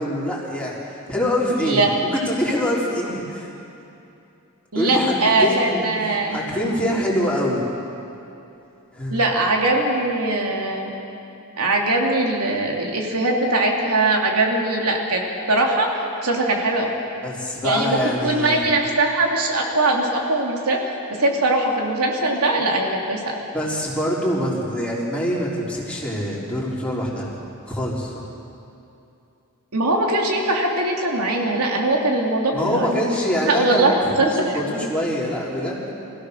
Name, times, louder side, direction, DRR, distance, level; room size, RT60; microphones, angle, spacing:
voice 1, 0.0-3.5 4.7-5.9 6.3-7.6 8.9-9.2 17.2-18.6 23.5-27.3 27.7-28.2 32.5-34.0 34.2-35.9, equal, 5° left, -6 dB, 3.9 m, -24 dB
voice 2, 4.7-6.4 9.1-10.9 11.6-15.2 15.5-15.9 16.2-16.9 17.6-20.8 21.2-23.4 29.7-33.0 33.4-33.9 34.2-34.3, right 2 dB, 85° right, 0 dB, 2.9 m, -21 dB
25.5 x 16.0 x 6.6 m, 2.8 s
head